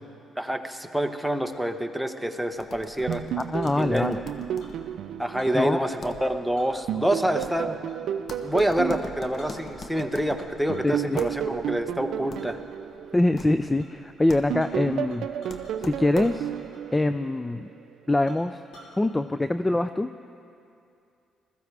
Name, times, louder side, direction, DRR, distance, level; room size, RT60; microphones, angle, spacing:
voice 1, 0.4-3.2 3.9-4.1 5.2-7.8 8.4-12.6, right 1 dB, ahead, 6 dB, 0.8 m, -27 dB
Chink clink, 1.2-1.7 3.0-3.8 4.6-4.9 5.2-5.6 6.5-8.1 8.4-8.6 9.0-9.1 9.4-10.0 10.3-11.0 11.4-11.7 12.4-12.5 13.0-13.4 13.8-13.9 14.1-15.7 16.1-17.0 17.2-17.3 17.8-17.9 18.3-19.0, equal, 75° left, 3.2 m, -52 dB
sound 1, 2.5-16.7, left 3 dB, 50° left, 1.0 m, -44 dB
sound 2, 3.1-6.4 6.9-10.1 10.7-14.0 14.5-17.7, right 9 dB, 75° right, 0.4 m, -33 dB
voice 2, 3.5-4.2 5.5-5.8 10.8-11.2 13.1-15.3 15.9-16.5 16.9-17.7 18.1-18.6 19.0-20.1, left 2 dB, 15° left, 11 dB, 0.3 m, -24 dB
20.5 x 14.5 x 3.3 m, 2.6 s
cardioid pair, 90°, 0 cm